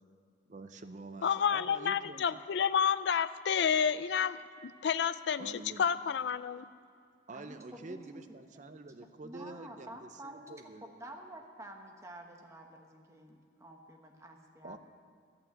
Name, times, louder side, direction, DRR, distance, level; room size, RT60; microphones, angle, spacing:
voice 1, 0.5-2.4 5.4-5.8 7.3-11.0 14.6-14.8, right 2 dB, 40° right, 9 dB, 0.5 m, -47 dB
voice 2, 1.2-6.7, left 7 dB, 65° left, 14 dB, 0.4 m, -30 dB
voice 3, 7.3-8.2 8.5-8.6 9.2-10.6 10.9-14.8, right 1 dB, 15° right, 2 dB, 1.0 m, -49 dB
11.0 x 8.7 x 7.4 m, 2.2 s
head